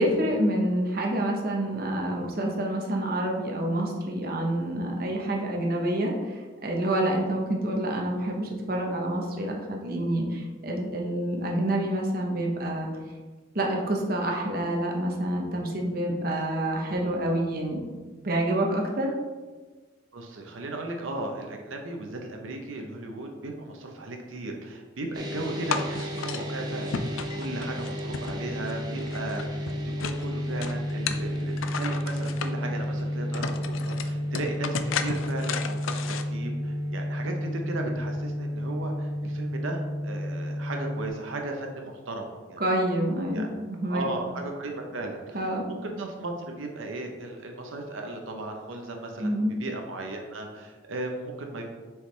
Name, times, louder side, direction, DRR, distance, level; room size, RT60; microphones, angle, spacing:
voice 1, 0.0-12.9 13.5-17.9 18.2-19.1 42.6-44.1 45.3-45.7 49.2-49.5, right 1 dB, 50° right, 0 dB, 0.9 m, -27 dB
voice 2, 20.1-29.6 30.0-42.7 43.3-43.5 43.9-49.3 49.6-51.7, right 2 dB, 85° right, 3 dB, 0.8 m, -36 dB
sound 1, 25.1-41.1, equal, 20° right, 0.8 m, -32 dB
sound 2, 25.7-26.4 26.9-28.7 29.0-30.2 30.6-32.5 33.0-33.1 33.3-36.2, left 6 dB, 85° left, 0.4 m, -33 dB
6.6 x 4.7 x 3.3 m, 1.3 s
head